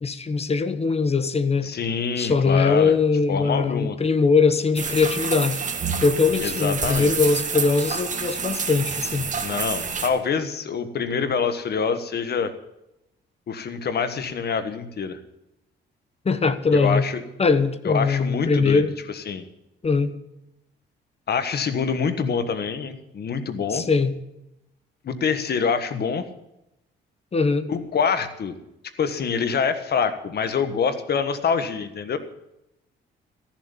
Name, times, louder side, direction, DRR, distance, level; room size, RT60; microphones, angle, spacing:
voice 1, 0.0-1.7 2.2-5.6 6.0-9.3 16.2-17.1 17.4-18.9 19.8-20.1 23.7-24.1 27.3-27.7, left 4 dB, 30° left, 12 dB, 1.2 m, -21 dB
voice 2, 1.6-2.9 3.3-4.0 6.4-7.1 9.4-12.5 13.5-15.2 16.7-17.2 17.8-19.4 21.3-23.9 25.0-26.3 27.7-28.5 29.0-32.2, left 6 dB, 55° left, 11 dB, 1.5 m, -25 dB
sound 1, 4.7-10.1, right 5 dB, 40° right, 1.9 m, -28 dB
14.0 x 7.3 x 9.1 m, 0.87 s
cardioid pair, 90°, 20 cm